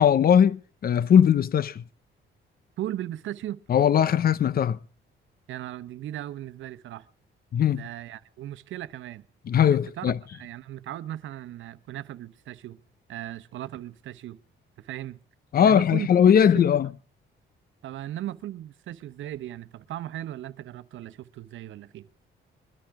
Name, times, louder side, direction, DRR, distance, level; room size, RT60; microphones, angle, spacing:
voice 1, 0.0-1.8 3.7-4.8 7.5-7.8 9.5-10.2 15.5-16.9, left 8 dB, 50° left, 0.8 m, -20 dB
voice 2, 2.8-3.6 5.5-7.1 7.7-9.3 9.7-12.8 13.1-14.4 14.8-15.2 15.6-16.1 16.4-16.7 17.8-22.1, right 13 dB, 75° right, 1.0 m, -37 dB
22.0 x 13.0 x 4.9 m
cardioid pair, 90°, 20 cm